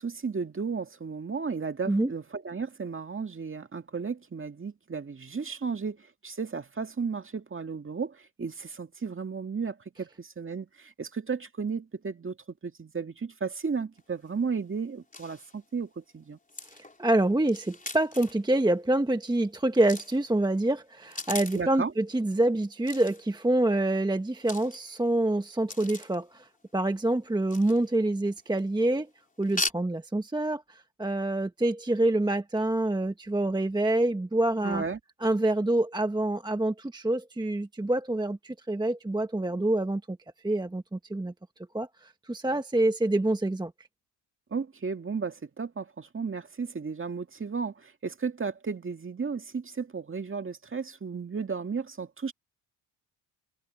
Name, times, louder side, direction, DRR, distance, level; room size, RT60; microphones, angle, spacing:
voice 1, 0.0-12.4 12.6-16.4 21.5-21.9 34.6-35.0 44.5-52.3, right 5 dB, 25° right, 2.1 m, -34 dB
sound 1, 14.0-14.1 14.3-14.4 14.8-14.9 15.1-15.6 16.5-18.5 19.8-20.3 20.9-21.7 22.8-23.3 24.4-25.1 25.7-26.2 27.4-28.1 28.4-28.7 29.4-29.7, left 2 dB, 15° left, 3.9 m, -38 dB
voice 2, 17.0-29.1 29.4-34.8 35.2-40.2 40.4-41.3 41.7-43.7, right 1 dB, 10° right, 1.2 m, -26 dB
cardioid pair, 85°, 47 cm